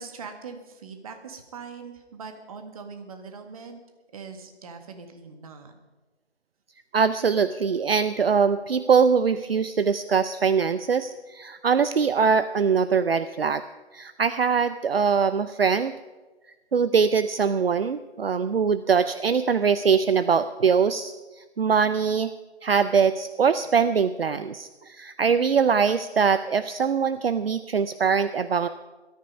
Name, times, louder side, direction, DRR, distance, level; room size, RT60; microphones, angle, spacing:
voice 1, 0.0-3.8 4.1-5.7, right 5 dB, 35° right, 6 dB, 1.8 m, -41 dB
voice 2, 6.9-13.6 13.9-15.9 16.7-22.3 22.6-28.7, right 6 dB, 60° right, 12 dB, 0.7 m, -22 dB
18.5 x 13.0 x 5.4 m, 1.2 s
figure-of-eight pair, 150°, 33 cm